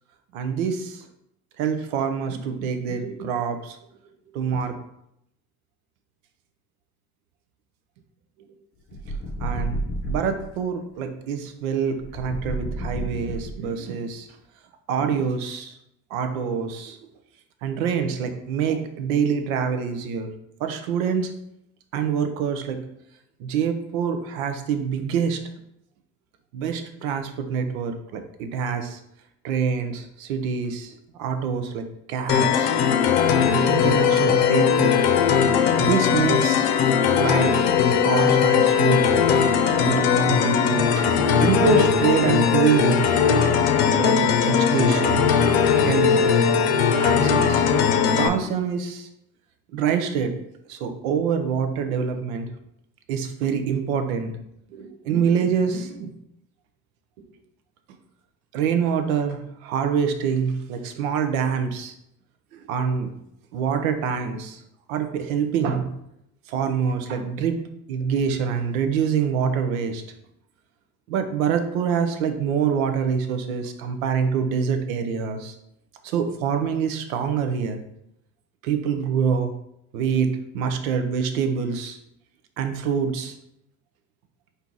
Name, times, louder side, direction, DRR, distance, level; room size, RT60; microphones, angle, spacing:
voice 1, 0.3-1.1 1.6-3.8 4.3-4.7 9.4-9.8 10.0-14.3 14.9-15.8 16.1-17.0 17.6-20.3 20.6-21.3 21.9-22.8 23.4-25.4 26.5-29.0 29.4-32.7 33.5-34.9 35.8-36.7 37.1-37.7 38.0-39.3 39.8-43.1 44.0-45.5 45.8-46.2 47.0-47.8 48.1-49.1 49.7-50.3 50.7-52.5 53.1-54.3 54.7-56.1 58.5-61.9 62.5-63.1 63.5-64.6 64.9-65.9 66.5-67.6 67.9-70.0 71.1-75.5 76.0-77.8 78.6-79.5 79.9-82.0 82.6-83.3, right 7 dB, 75° right, 7 dB, 0.7 m, -25 dB
sound 1, 8.9-10.5 12.0-13.8, right 1 dB, 25° left, 0.6 m, -30 dB
sound 2, 32.3-48.3, left 7 dB, 65° left, 0.7 m, -19 dB
4.4 x 2.8 x 3.8 m, 0.78 s
hypercardioid pair, 70°, 42 cm